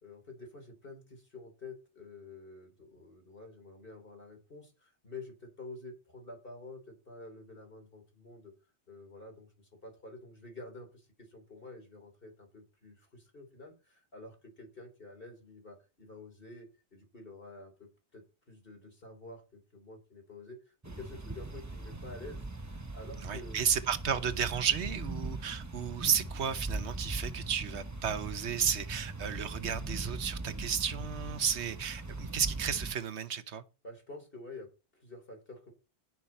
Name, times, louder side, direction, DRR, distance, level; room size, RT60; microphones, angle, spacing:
voice 1, 0.0-8.5 8.9-23.6 33.8-35.7, left 2 dB, 55° left, 4.1 m, -49 dB
sound 1, 20.8-32.9, right 2 dB, 15° right, 0.8 m, -40 dB
voice 2, 23.2-33.6, right 7 dB, 75° right, 1.3 m, -33 dB
17.0 x 6.0 x 4.3 m
omnidirectional pair, 1.2 m